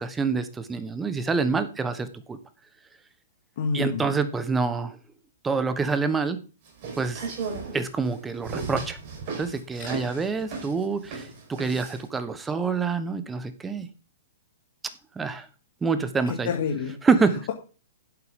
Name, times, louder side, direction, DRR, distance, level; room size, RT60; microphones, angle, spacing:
voice 1, 0.0-2.4 3.7-5.0 5.4-6.4 7.0-7.2 7.7-9.0 9.4-13.9 15.1-15.5 15.8-16.5 17.0-17.5, right 4 dB, 10° right, 11 dB, 1.2 m, -26 dB
voice 2, 3.6-4.1 9.8-10.2 16.5-16.9, left 5 dB, 55° left, 1 dB, 1.9 m, -28 dB
sound 1, 6.7-12.1, right 4 dB, 45° right, 4.7 m, -36 dB
11.0 x 8.1 x 3.8 m, 0.35 s
hypercardioid pair, 115°, 0 cm